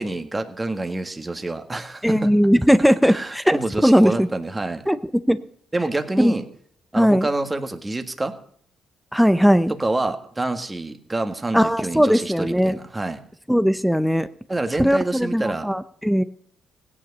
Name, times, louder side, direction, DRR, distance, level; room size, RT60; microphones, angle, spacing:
voice 1, 0.0-2.3 3.1-4.8 5.7-6.4 6.9-8.3 9.8-13.2 14.5-15.7, right 2 dB, 15° right, 7 dB, 1.6 m, -27 dB
voice 2, 2.0-4.3 4.9-5.0 5.3-5.4 6.2-6.3 7.0-7.3 9.1-9.7 11.5-12.8 13.5-14.3 14.8-16.2, equal, ahead, 13 dB, 0.6 m, -18 dB
16.5 x 9.8 x 5.4 m, 0.62 s
cardioid pair, 90°, 0 cm